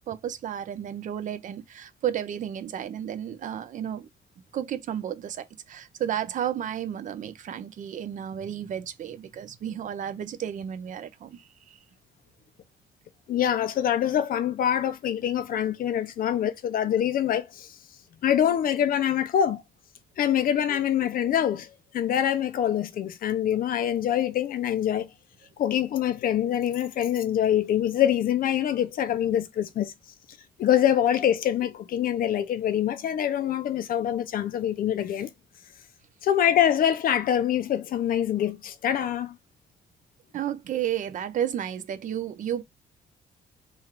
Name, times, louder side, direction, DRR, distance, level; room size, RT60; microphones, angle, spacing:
voice 1, 0.0-4.1 4.5-11.8 40.3-42.6, right 10 dB, 50° right, 0.4 m, -32 dB
voice 2, 13.3-17.7 18.2-19.6 20.2-21.7 21.9-25.1 25.6-29.9 30.6-35.3 36.2-39.4, left 10 dB, 60° left, 0.5 m, -25 dB
3.1 x 2.4 x 4.3 m
cardioid pair, 150°, 17 cm